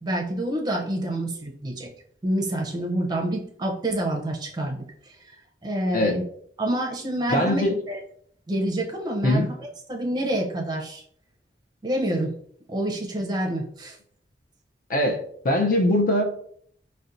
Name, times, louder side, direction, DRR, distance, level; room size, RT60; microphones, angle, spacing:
voice 1, 0.0-1.9 2.2-5.1 5.6-6.2 6.6-8.0 8.5-11.0 11.8-12.3 12.7-14.0, right 1 dB, 25° right, 0.6 m, -27 dB
voice 2, 7.3-7.7 9.2-9.5 14.9-15.2 15.4-16.2, left 1 dB, 50° left, 0.6 m, -21 dB
4.2 x 2.1 x 2.5 m
head